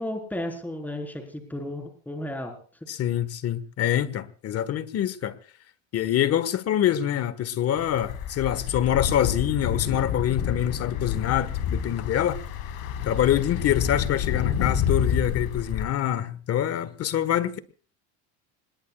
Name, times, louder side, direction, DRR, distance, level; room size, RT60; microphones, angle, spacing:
voice 1, 0.0-2.6, left 1 dB, 5° left, 4.3 m, -33 dB
voice 2, 2.9-5.3 5.9-12.4 13.1-17.6, left 11 dB, 40° left, 1.5 m, -25 dB
sound 1, 7.8-15.8, left 8 dB, 70° left, 4.7 m, -29 dB
26.0 x 21.0 x 2.4 m
supercardioid pair, 120°, 36 cm